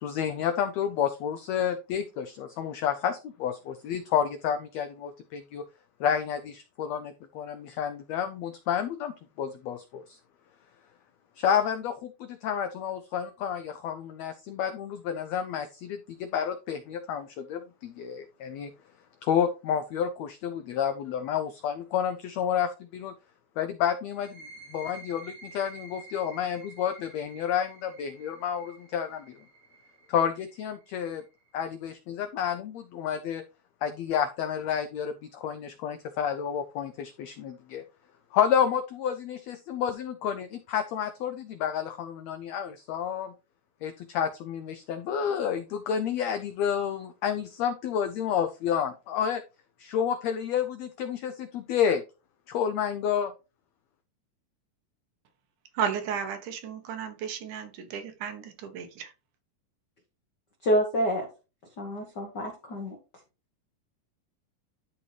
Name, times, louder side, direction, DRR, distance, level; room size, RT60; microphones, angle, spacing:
voice 1, 0.0-5.6 6.0-9.1 9.4-10.2 11.4-18.7 19.2-23.1 23.6-24.4 24.7-29.2 30.1-31.2 31.5-33.4 33.8-37.8 38.3-43.3 43.8-49.4 49.8-52.0 52.5-53.3, left 8 dB, 85° left, 9 dB, 1.5 m, -30 dB
sound 1, 24.1-31.5, right 2 dB, 55° right, 4.6 m, -50 dB
voice 2, 55.7-59.1, right 7 dB, 75° right, 7 dB, 2.5 m, -33 dB
voice 3, 60.6-61.3 61.8-63.0, equal, 65° left, 3 dB, 1.0 m, -27 dB
12.0 x 4.3 x 3.2 m, 0.30 s
omnidirectional pair, 3.8 m